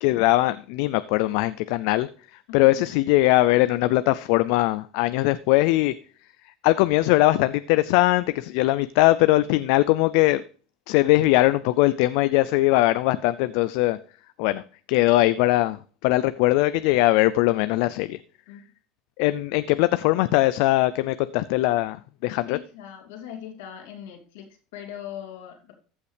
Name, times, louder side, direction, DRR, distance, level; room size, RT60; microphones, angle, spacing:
voice 1, 0.0-2.1 2.5-5.9 6.6-10.4 10.9-14.0 14.4-14.6 14.9-15.8 16.0-18.2 19.2-22.0 22.2-22.6, left 18 dB, 75° left, 0.4 m, -20 dB
voice 2, 22.5-25.7, left 9 dB, 90° left, 2.8 m, -40 dB
14.5 x 5.6 x 3.4 m
supercardioid pair, 125°, 0 cm